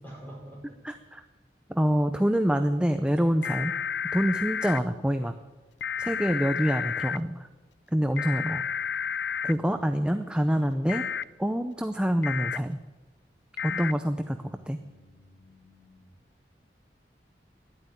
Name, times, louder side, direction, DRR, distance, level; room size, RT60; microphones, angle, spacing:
voice 1, 0.0-0.6 6.0-6.2 9.6-9.8 14.3-16.2, equal, 10° left, -2 dB, 5.3 m, -49 dB
voice 2, 0.8-1.2 1.7-3.7 4.1-5.3 6.0-7.5 7.9-8.6 9.4-11.1 11.4-12.8 13.6-14.4 14.7-14.8, equal, 5° right, 8 dB, 0.5 m, -26 dB
sound 1, 3.4-4.8 5.8-7.2 8.2-9.5 10.9-11.2 12.2-12.6 13.6-13.9, left 7 dB, 75° left, 0.4 m, -31 dB
13.0 x 11.5 x 9.2 m, 1.2 s
head